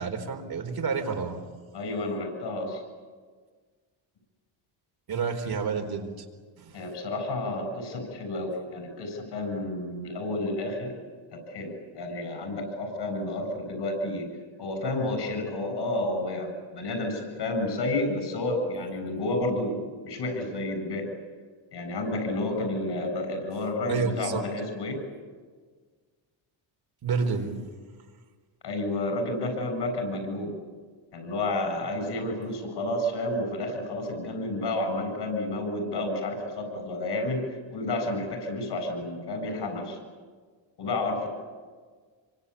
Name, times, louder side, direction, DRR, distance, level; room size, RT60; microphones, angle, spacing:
voice 1, 0.0-1.4 5.1-6.2 6.6-6.8 23.9-24.4 27.0-27.5, right 5 dB, 50° right, 5 dB, 4.2 m, -29 dB
voice 2, 1.7-2.8 6.7-10.9 11.3-14.3 14.6-21.1 21.7-25.0 28.6-30.5 31.1-40.0 40.8-41.3, left 2 dB, 60° left, 6 dB, 7.9 m, -30 dB
25.5 x 24.5 x 8.5 m, 1.5 s
cardioid pair, 95°, 46 cm